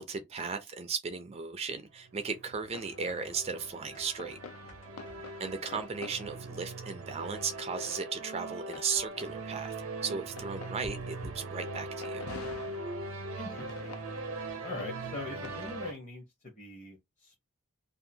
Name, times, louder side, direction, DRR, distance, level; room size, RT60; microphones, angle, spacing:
voice 1, 0.0-4.4 5.4-9.7 10.0-12.2, right 5 dB, 30° right, 0.4 m, -36 dB
sound 1, 2.0-15.9, right 2 dB, 80° right, 0.7 m, -41 dB
sound 2, 2.5-16.0, left 4 dB, 90° left, 0.5 m, -50 dB
sound 3, 3.6-6.9 7.3-7.4, equal, 70° left, 1.4 m, -61 dB
voice 2, 13.3-13.9 14.6-17.3, left 3 dB, 35° left, 0.8 m, -43 dB
2.7 x 2.4 x 2.6 m
head